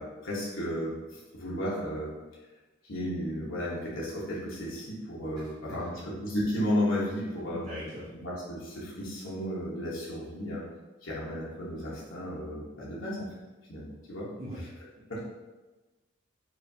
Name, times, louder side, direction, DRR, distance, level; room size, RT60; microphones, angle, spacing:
voice 1, 0.0-2.2 2.9-7.6 8.1-10.6 11.0-13.3 13.7-14.3 14.6-14.7 15.1-15.2, equal, 75° left, -7 dB, 1.1 m, -33 dB
voice 2, 5.7-6.0 7.5-8.0 14.4-14.6, equal, 35° right, -9 dB, 0.8 m, -40 dB
4.7 x 2.5 x 2.7 m, 1.2 s
head